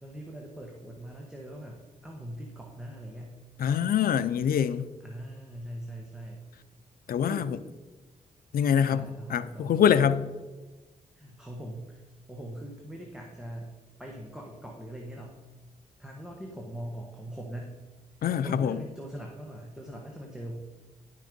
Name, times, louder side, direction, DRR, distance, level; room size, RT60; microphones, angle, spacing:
voice 1, 0.0-3.4 5.0-6.4 7.2-7.5 8.9-10.2 11.1-15.3 16.0-17.8 18.4-20.6, right 1 dB, 5° right, 1.2 m, -41 dB
voice 2, 3.6-4.9 7.1-7.4 8.5-9.0 9.3-10.2 18.2-18.8, left 8 dB, 85° left, 0.5 m, -24 dB
10.5 x 6.5 x 5.2 m
wide cardioid pair, 120°, 15 cm